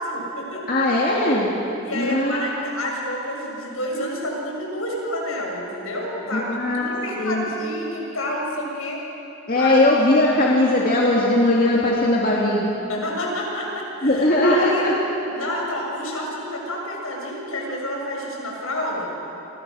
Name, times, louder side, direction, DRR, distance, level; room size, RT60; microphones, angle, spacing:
voice 1, 0.0-0.6 1.8-9.0 9.6-9.7 12.9-14.9 15.3-19.1, left 1 dB, 75° left, -1 dB, 6.9 m, -29 dB
voice 2, 0.7-1.5 1.9-2.4 6.3-6.9 7.2-7.4 9.5-12.6 14.0-14.9, left 1 dB, 40° left, -4 dB, 2.7 m, -19 dB
30.0 x 25.0 x 6.5 m, 2.9 s
head